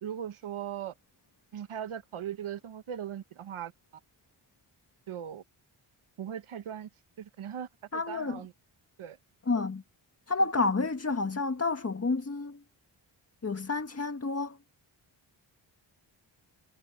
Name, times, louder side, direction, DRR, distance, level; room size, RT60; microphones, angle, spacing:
voice 1, 0.0-0.9 1.5-3.7 5.1-5.4 6.2-6.9 7.2-8.5 9.0-9.2, right 9 dB, 85° right, 1.3 m, -39 dB
voice 2, 7.9-8.4 9.5-9.8 10.3-12.6 13.4-14.6, left 3 dB, 30° left, 1.7 m, -29 dB
wide cardioid pair, 95°, 49 cm